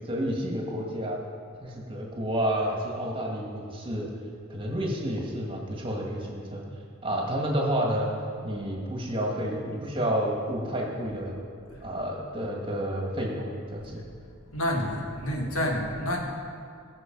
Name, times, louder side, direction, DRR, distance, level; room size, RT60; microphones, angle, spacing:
voice 1, 0.1-1.2 1.6-4.1 4.5-6.6 7.0-8.1 8.4-11.3 11.8-14.0, equal, 25° right, -1 dB, 1.8 m, -30 dB
voice 2, 14.5-16.2, left 1 dB, 90° left, 0 dB, 2.1 m, -29 dB
18.5 x 6.6 x 5.3 m, 2.4 s
head